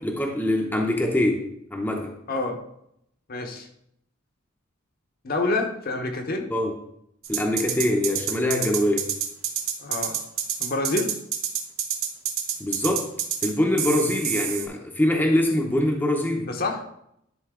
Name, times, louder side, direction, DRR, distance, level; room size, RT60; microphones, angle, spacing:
voice 1, 0.0-1.4 1.7-2.1 6.5-6.8 7.3-9.1 12.6-13.1 13.4-16.5, left 1 dB, 10° left, 1 dB, 0.7 m, -23 dB
voice 2, 2.3-2.6 3.3-3.7 5.2-6.5 9.8-10.2 10.6-11.1 16.5-16.8, left 2 dB, 45° left, 3 dB, 1.0 m, -27 dB
sound 1, 7.2-13.5 13.8-14.7, right 9 dB, 75° right, 1.0 m, -27 dB
11.0 x 3.8 x 3.7 m, 0.75 s
head